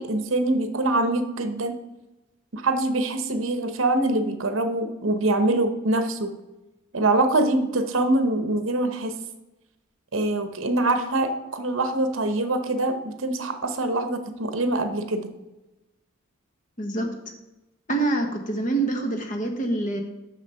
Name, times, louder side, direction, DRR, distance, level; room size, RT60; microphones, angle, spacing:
voice 1, 0.0-1.8 2.5-6.3 6.9-9.1 10.1-15.3, right 2 dB, 65° right, 9 dB, 0.9 m, -24 dB
voice 2, 17.9-20.0, right 2 dB, 40° left, 4 dB, 1.1 m, -25 dB
6.5 x 6.2 x 5.5 m, 1.0 s
head